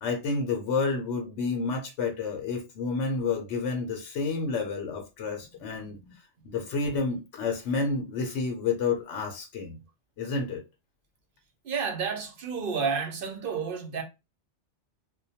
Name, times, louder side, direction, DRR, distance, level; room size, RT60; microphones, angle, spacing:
voice 1, 0.0-6.0 6.5-9.8 10.2-10.6, left 4 dB, 75° left, 0.9 m, -30 dB
voice 2, 5.7-6.1 6.5-6.6 11.6-14.0, right 6 dB, 60° right, 0.7 m, -31 dB
2.2 x 2.2 x 2.7 m
omnidirectional pair, 1.2 m